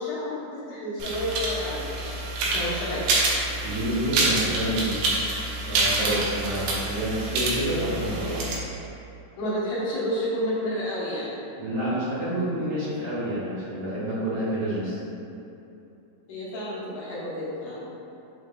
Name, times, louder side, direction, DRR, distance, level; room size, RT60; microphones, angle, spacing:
voice 1, 0.0-2.1 2.4-3.2 9.4-11.4 16.3-17.9, equal, 75° left, -9 dB, 2.6 m, -30 dB
sound 1, 1.0-8.6, right 2 dB, 80° right, 2.3 m, -27 dB
voice 2, 3.6-5.0 5.7-8.4 11.6-15.0, right 1 dB, 55° right, -12 dB, 2.5 m, -28 dB
6.5 x 3.4 x 2.2 m, 2.8 s
omnidirectional pair, 3.8 m